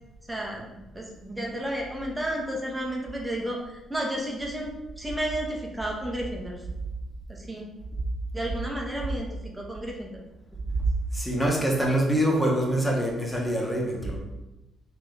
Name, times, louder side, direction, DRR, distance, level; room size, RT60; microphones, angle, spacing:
voice 1, 0.3-0.6 0.9-6.6 7.3-7.7 8.3-10.2, right 1 dB, 10° right, -1 dB, 1.0 m, -32 dB
voice 2, 11.1-14.2, right 1 dB, 5° left, -2 dB, 1.2 m, -25 dB
3.7 x 3.5 x 3.9 m, 0.98 s
cardioid pair, 90°, 0 cm